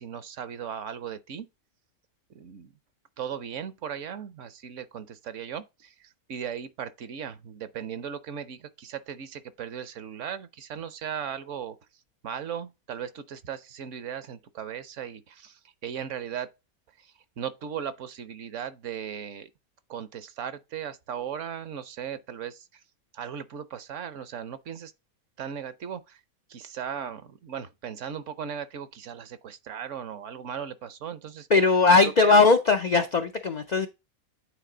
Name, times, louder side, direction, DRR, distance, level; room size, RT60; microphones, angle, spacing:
voice 1, 0.0-1.5 2.3-2.7 3.2-11.8 12.2-16.5 17.0-19.5 19.9-22.8 23.1-24.9 25.4-26.2 26.5-31.5 31.9-32.4, right 8 dB, 65° right, 1.0 m, -37 dB
voice 2, 31.5-33.9, left 4 dB, 90° left, 0.3 m, -19 dB
9.2 x 3.8 x 3.8 m
omnidirectional pair, 1.5 m